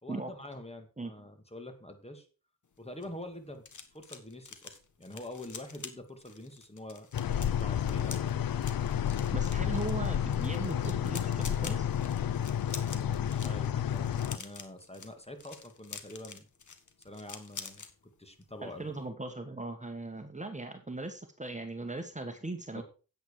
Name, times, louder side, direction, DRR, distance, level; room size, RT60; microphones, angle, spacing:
voice 1, 0.0-2.3 2.8-3.6 3.9-8.2 12.8-16.5 17.0-17.8 18.2-18.9 22.7-22.8, left 1 dB, 20° left, 6 dB, 2.2 m, -46 dB
sound 1, 2.7-17.9 18.2-18.5 18.8-19.0, left 5 dB, 60° left, 1.6 m, -47 dB
sound 2, 7.1-14.4, left 9 dB, 80° left, 0.6 m, -31 dB
voice 2, 9.3-11.8 18.6-22.8, right 2 dB, 20° right, 6 dB, 1.5 m, -39 dB
9.2 x 8.1 x 4.9 m, 0.34 s
wide cardioid pair, 75°, 34 cm